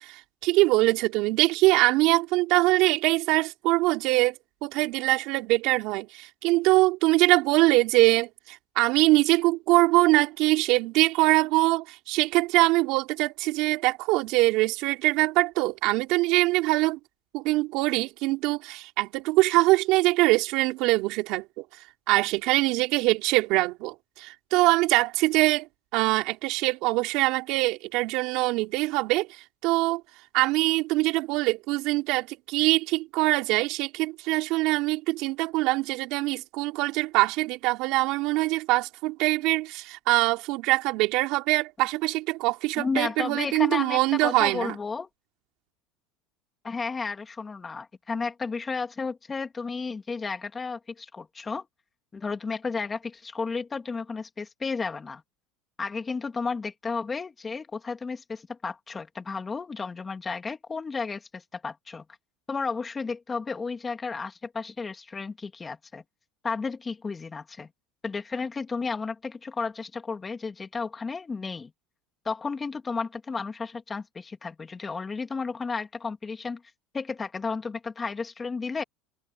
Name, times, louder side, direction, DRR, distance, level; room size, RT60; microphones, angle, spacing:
voice 1, 0.0-4.4 4.6-17.0 17.3-21.6 22.1-30.0 30.3-44.7, right 21 dB, 65° right, 3.8 m, -23 dB
voice 2, 42.8-45.1 46.6-51.7 52.1-55.2 55.8-62.0 62.5-66.0 66.4-67.7 68.0-71.7 72.2-76.6 76.9-78.8, left 4 dB, 20° left, 2.9 m, -33 dB
supercardioid pair, 115°, 0 cm